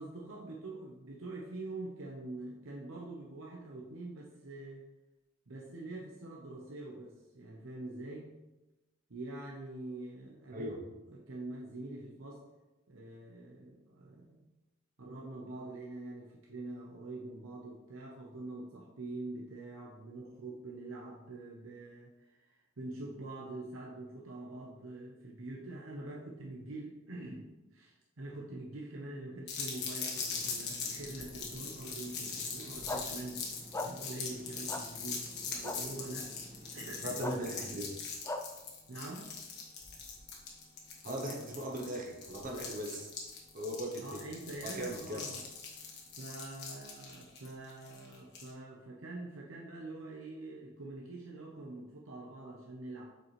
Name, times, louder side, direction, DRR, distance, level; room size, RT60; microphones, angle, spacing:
voice 1, 0.0-4.8 5.5-8.3 9.1-10.7 11.1-12.4 12.9-14.4 15.0-33.4 33.8-36.3 36.7-37.2 37.7-37.8 38.9-39.3 44.0-45.4 46.1-53.1, right 2 dB, 90° right, -2 dB, 0.9 m, -45 dB
sound 1, 29.5-48.5, left 5 dB, 55° left, 1.5 m, -42 dB
sound 2, 30.2-37.6, right 2 dB, 25° right, 1.4 m, -53 dB
sound 3, 32.9-33.0 33.7-33.9 34.7-34.8 35.6-35.8 37.2-37.3 38.3-38.4, left 2 dB, 15° left, 0.4 m, -36 dB
voice 2, 37.0-37.9 41.0-43.1 43.5-44.2 44.6-45.3, right 1 dB, 45° right, 0 dB, 0.9 m, -38 dB
7.4 x 5.3 x 3.2 m, 1.0 s
head